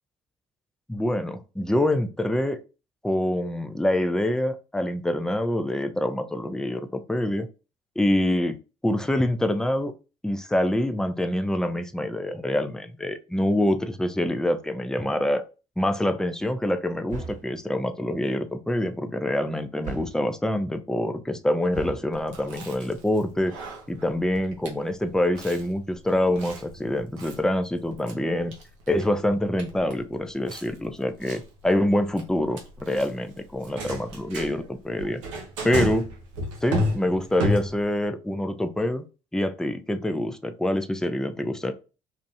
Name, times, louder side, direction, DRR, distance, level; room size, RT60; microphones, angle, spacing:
voice 1, 0.9-2.6 3.0-7.5 8.0-8.6 8.8-9.9 10.2-15.4 15.8-23.5 23.9-28.5 28.9-35.2 35.6-36.1 36.6-39.0 39.3-41.7, left 1 dB, 5° left, 8 dB, 0.4 m, -26 dB
sound 1, 17.1-17.6 19.8-20.3 21.7-22.1, right 5 dB, 55° right, 1.0 m, -37 dB
Chewing mastication, 22.1-38.1, equal, 85° right, 0.5 m, -34 dB
2.6 x 2.1 x 2.7 m, 0.31 s
hypercardioid pair, 50°, 16 cm